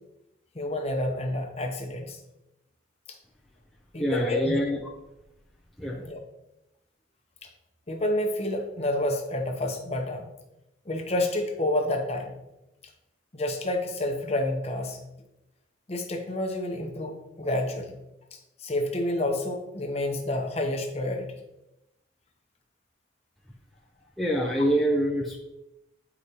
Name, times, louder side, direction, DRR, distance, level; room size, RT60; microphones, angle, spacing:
voice 1, 0.5-2.2 3.9-4.4 6.0-6.2 7.9-10.3 10.9-12.3 13.3-15.0 15.9-17.9 18.6-21.3, left 1 dB, 30° left, 3 dB, 0.8 m, -29 dB
voice 2, 4.0-4.8 5.8-6.0 24.2-25.4, equal, ahead, -3 dB, 0.5 m, -25 dB
8.3 x 4.9 x 2.8 m, 0.92 s
head